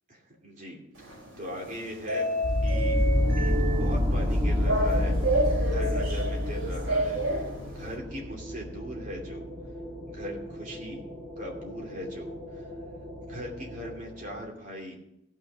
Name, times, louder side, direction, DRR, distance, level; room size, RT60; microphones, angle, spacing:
voice 1, 0.1-2.3 2.6-3.0 3.4-9.5 10.1-11.0 11.4-12.7 13.3-14.9, equal, 40° right, -1 dB, 2.7 m, -40 dB
sound 1, 0.9-7.9, right 1 dB, 70° right, 4.2 m, -30 dB
sound 2, 2.4-14.4, left 1 dB, 15° right, 1.8 m, -30 dB
16.5 x 6.3 x 5.0 m, 0.82 s
head